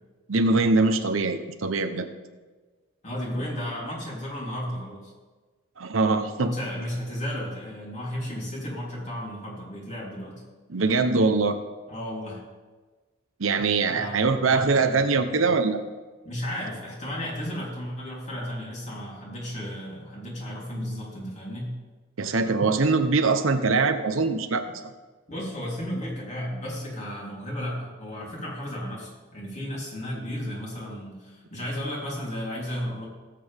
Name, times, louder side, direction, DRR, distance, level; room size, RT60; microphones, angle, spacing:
voice 1, 0.3-2.1 5.8-6.5 10.7-11.6 13.4-15.8 22.2-24.7, right 3 dB, 90° right, 8 dB, 0.9 m, -23 dB
voice 2, 3.0-5.1 6.4-10.4 11.9-12.4 13.9-15.0 16.2-21.8 25.3-33.1, equal, 35° left, -4 dB, 3.4 m, -34 dB
17.5 x 7.7 x 3.5 m, 1.3 s
head